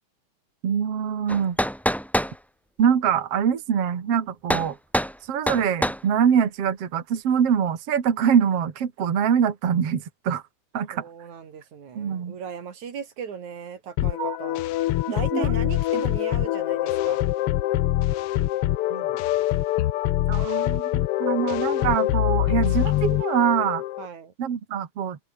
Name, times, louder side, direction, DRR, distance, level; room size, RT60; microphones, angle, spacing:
voice 1, 0.6-1.6 2.8-4.8 5.2-10.4 10.7-11.0 12.0-12.3 14.2-14.4 15.3-15.5 18.9-19.1 20.3-20.9 21.2-23.8 24.4-25.2, right 8 dB, 55° right, 3.1 m, -24 dB
sound 1, 1.3-2.4 4.5-4.7 4.9-5.2 5.5-6.0, equal, ahead, 1.6 m, -25 dB
voice 2, 10.9-17.2 24.0-24.3, right 7 dB, 75° right, 4.0 m, -37 dB
sound 2, 14.0-24.1, left 15 dB, 75° left, 1.3 m, -24 dB
open air
omnidirectional pair, 3.4 m